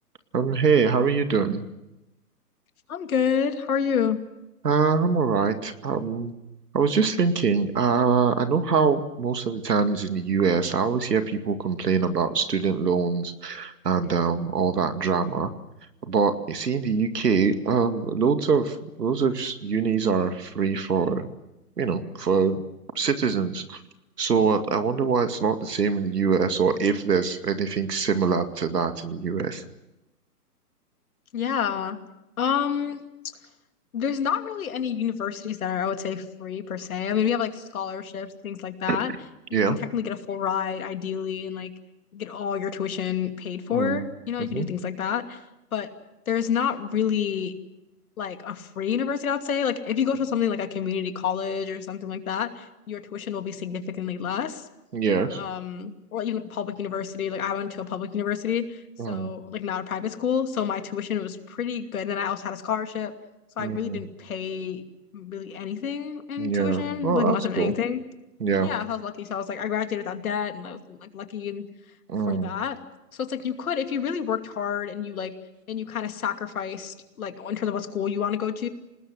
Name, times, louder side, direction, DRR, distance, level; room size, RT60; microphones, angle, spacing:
voice 1, 0.3-1.6 4.6-6.3 6.7-15.5 16.0-21.3 21.8-22.6 23.0-23.8 24.2-29.6 38.9-39.0 39.5-39.8 43.7-44.0 44.5-44.7 54.9-55.4 59.0-59.3 63.6-64.0 66.4-67.7 68.4-68.7 72.1-72.5, right 5 dB, 80° right, 8 dB, 2.3 m, -24 dB
voice 2, 2.9-4.2 31.3-32.0 32.4-33.0 33.9-39.1 39.5-41.7 42.1-45.4 45.7-45.9 46.3-47.5 48.2-54.7 55.3-63.1 63.6-64.8 65.1-68.0 68.6-71.6 72.3-72.8 73.1-75.3 75.7-78.7, left 8 dB, 60° left, 7 dB, 2.7 m, -29 dB
27.5 x 19.5 x 7.7 m, 0.94 s
hypercardioid pair, 140°, 47 cm